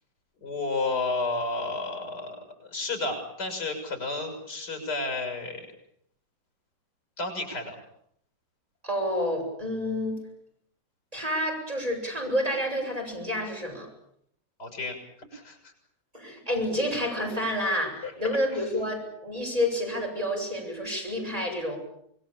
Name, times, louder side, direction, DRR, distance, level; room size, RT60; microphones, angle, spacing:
voice 1, 0.4-5.7 7.2-7.8 14.6-15.7 18.0-18.6, left 3 dB, 75° left, 5 dB, 7.4 m, -32 dB
voice 2, 8.8-10.2 11.1-13.9 16.1-21.8, left 1 dB, 20° right, 0 dB, 7.8 m, -29 dB
26.5 x 21.5 x 8.6 m, 0.71 s
omnidirectional pair, 1.8 m